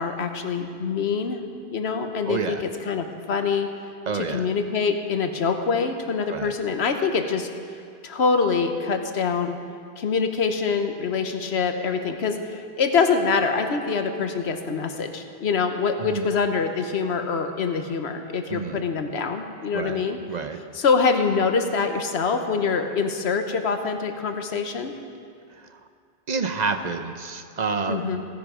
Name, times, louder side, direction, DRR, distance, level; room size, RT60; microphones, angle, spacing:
voice 1, 0.0-1.4 1.7-3.7 4.1-7.5 8.0-9.6 10.0-20.2 20.7-24.9 27.9-28.3, left 5 dB, 85° left, 6 dB, 1.2 m, -25 dB
voice 2, 2.3-2.6 4.1-4.5 6.3-6.5 16.1-16.3 18.5-18.8 19.7-20.0 20.3-20.6 25.5-25.8 26.3-28.2, right 4 dB, 50° right, 8 dB, 0.7 m, -29 dB
16.0 x 10.0 x 5.0 m, 2.3 s
omnidirectional pair, 1.0 m